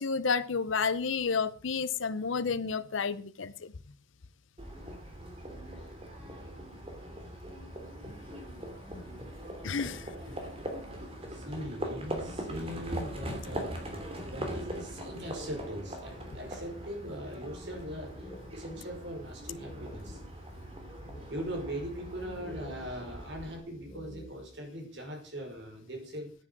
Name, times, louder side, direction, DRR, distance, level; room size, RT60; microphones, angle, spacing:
voice 1, 0.0-3.7 9.6-10.1, left 5 dB, 75° left, 15 dB, 0.7 m, -31 dB
Livestock farm animals working animals, 4.6-23.6, equal, 30° right, 3.1 m, -41 dB
voice 2, 11.3-20.2 21.3-26.3, equal, 55° right, 3 dB, 5.1 m, -40 dB
sound 1, 14.2-15.2 15.6-15.7 15.9-20.5 21.0-21.8 22.3-24.6, equal, 20° left, 2.2 m, -51 dB
9.9 x 9.8 x 7.6 m, 0.43 s
head